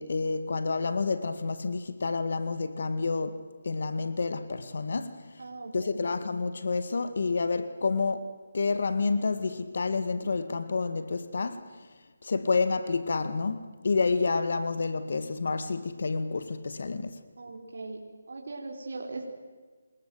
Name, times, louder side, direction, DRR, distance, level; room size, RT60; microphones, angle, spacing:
voice 1, 0.0-5.2 5.7-11.7 12.2-17.1, left 4 dB, 60° left, 2.0 m, -29 dB
voice 2, 5.4-6.0 17.4-18.0 18.3-19.3, right 3 dB, 65° right, 4.5 m, -39 dB
28.0 x 21.0 x 7.9 m
figure-of-eight pair, 165°, 0 cm